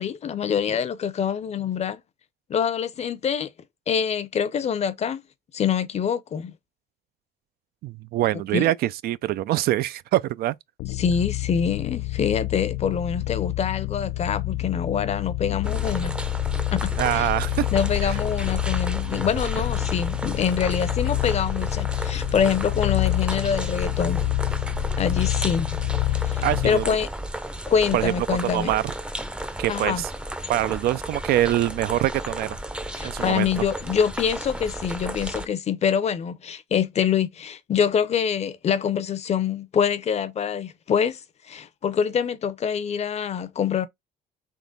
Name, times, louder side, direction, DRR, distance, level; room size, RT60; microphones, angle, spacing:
voice 1, 0.0-2.0 2.5-3.5 3.9-5.2 5.5-6.5 8.5-8.7 11.0-16.1 16.7-17.3 17.7-24.3 25.0-25.8 26.2-27.1 27.7-28.7 29.7-30.0 32.9-41.2 41.5-43.9, left 7 dB, 40° left, 0.6 m, -25 dB
voice 2, 7.8-10.5 17.0-17.7 18.0-18.2 26.4-27.0 27.9-28.8 29.6-30.1 30.5-32.6 33.0-33.5, right 14 dB, 65° right, 0.4 m, -24 dB
sound 1, 10.8-26.9, left 17 dB, 90° left, 0.4 m, -28 dB
sound 2, 15.6-35.5, right 1 dB, 5° right, 0.5 m, -33 dB
3.8 x 2.9 x 3.9 m
cardioid pair, 110°, 17 cm